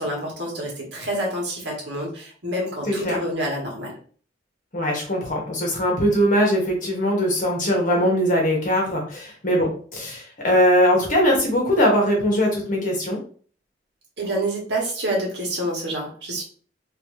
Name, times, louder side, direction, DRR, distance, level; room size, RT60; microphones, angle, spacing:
voice 1, 0.0-4.0 14.2-16.4, right 1 dB, 75° right, -2 dB, 1.6 m, -27 dB
voice 2, 2.9-3.2 4.7-13.2, equal, 45° left, -1 dB, 1.4 m, -21 dB
3.2 x 3.1 x 3.1 m, 0.44 s
head